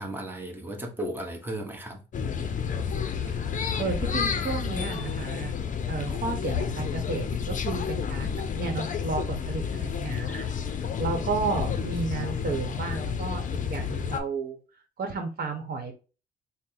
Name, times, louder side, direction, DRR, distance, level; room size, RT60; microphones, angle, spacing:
voice 1, 0.0-2.0, right 1 dB, 10° right, 1.0 m, -35 dB
sound 1, 2.1-14.2, left 7 dB, 40° left, 0.6 m, -30 dB
voice 2, 3.8-5.5 5.9-10.4 11.0-13.4 13.7-14.6 15.0-15.9, right 4 dB, 50° right, 1.1 m, -32 dB
4.0 x 2.1 x 3.9 m
cardioid pair, 90°, 20 cm